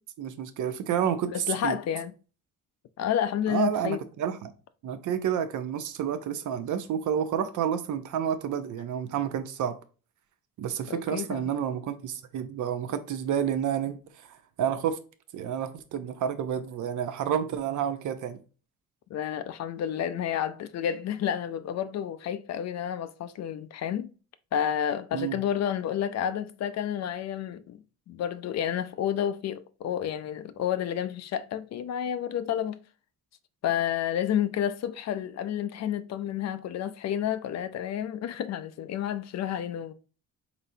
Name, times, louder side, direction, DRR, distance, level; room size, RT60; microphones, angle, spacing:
voice 1, 0.2-1.8 3.5-4.5 4.8-9.7 10.6-15.0 15.3-18.4 25.1-25.4, right 8 dB, 65° right, 0.7 m, -30 dB
voice 2, 1.3-2.1 3.0-4.0 10.9-11.5 19.1-24.1 24.5-27.8 28.1-32.8 33.6-39.9, left 9 dB, 55° left, 0.4 m, -30 dB
4.3 x 4.0 x 2.6 m
cardioid pair, 165°, 33 cm